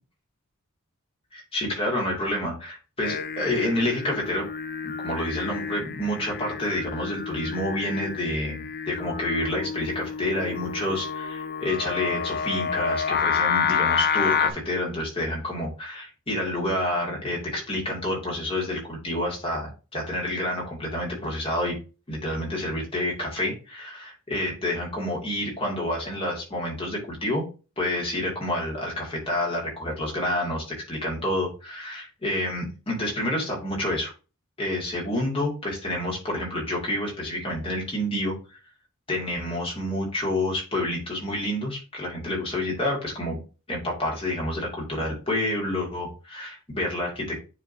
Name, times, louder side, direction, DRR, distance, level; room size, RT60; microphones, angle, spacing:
voice 1, 1.3-4.5 4.8-21.7 22.1-27.4 27.8-34.1 34.6-38.3 39.1-43.4 43.7-47.4, left 1 dB, 25° left, -2 dB, 2.5 m, -28 dB
Singing, 3.0-14.5, left 6 dB, 45° left, 0.6 m, -29 dB
9.5 x 3.7 x 2.8 m, 0.32 s
head